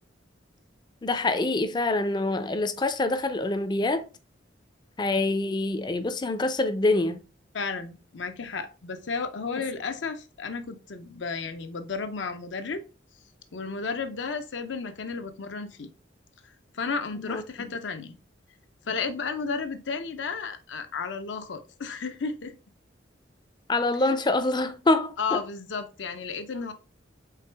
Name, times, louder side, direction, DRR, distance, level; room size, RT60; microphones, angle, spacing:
voice 1, 1.0-4.0 5.0-7.2 17.2-17.4 23.7-25.4, left 2 dB, 25° left, 0.4 m, -25 dB
voice 2, 7.5-12.8 13.5-15.9 16.7-18.2 18.9-22.5 25.2-26.7, left 4 dB, 75° left, 0.6 m, -33 dB
4.7 x 3.3 x 3.3 m
head